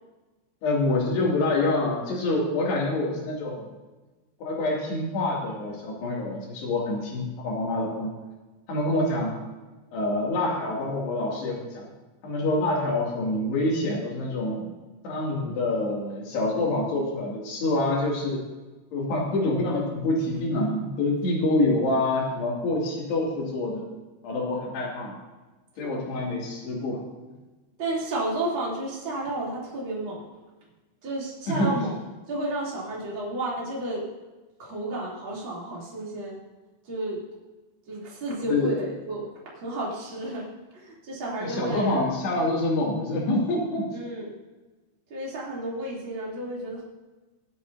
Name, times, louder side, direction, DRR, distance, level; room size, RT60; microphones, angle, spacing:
voice 1, 0.6-3.6 4.4-8.1 8.7-9.4 9.9-11.9 12.2-14.7 15.0-18.4 18.9-23.8 24.2-25.2 25.8-27.0 31.5-31.8 38.5-38.7 41.4-43.9, left 2 dB, 70° left, -3 dB, 4.7 m, -26 dB
voice 2, 27.8-30.2 31.0-31.9 32.3-34.0 34.6-36.4 36.9-37.2 37.9-39.3 39.6-40.5 40.7-42.1 43.9-44.3 45.1-46.8, right 1 dB, 30° right, -5 dB, 3.6 m, -31 dB
22.5 x 8.3 x 2.8 m, 1.2 s
omnidirectional pair, 5.0 m